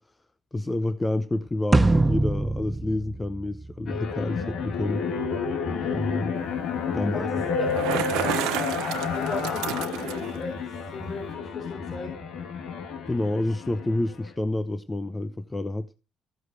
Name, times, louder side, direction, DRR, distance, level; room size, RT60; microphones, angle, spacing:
voice 1, 0.5-5.0 5.9-6.3 6.9-7.4 13.1-15.9, left 1 dB, 20° left, 0.8 m, -28 dB
sound 1, 1.7-4.2, right 2 dB, 20° right, 0.7 m, -23 dB
sound 2, 3.9-14.3, left 6 dB, 70° left, 2.0 m, -30 dB
voice 2, 5.7-6.1 7.1-8.5 9.1-12.1, left 3 dB, 50° left, 4.9 m, -38 dB
Bicycle, 7.5-10.4, right 14 dB, 90° right, 1.0 m, -31 dB
15.0 x 6.3 x 8.2 m
supercardioid pair, 75°, 0 cm